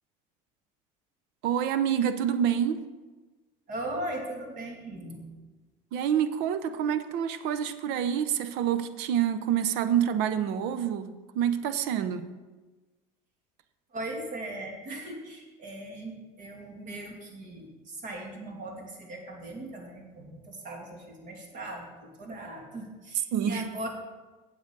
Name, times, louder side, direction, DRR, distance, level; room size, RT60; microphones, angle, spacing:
voice 1, 1.4-2.9 5.9-12.3 23.3-23.6, right 9 dB, 70° right, 12 dB, 0.7 m, -27 dB
voice 2, 3.7-5.4 13.9-23.9, right 1 dB, 50° right, 1 dB, 2.4 m, -39 dB
8.1 x 8.0 x 5.3 m, 1.2 s
supercardioid pair, 105°, 18 cm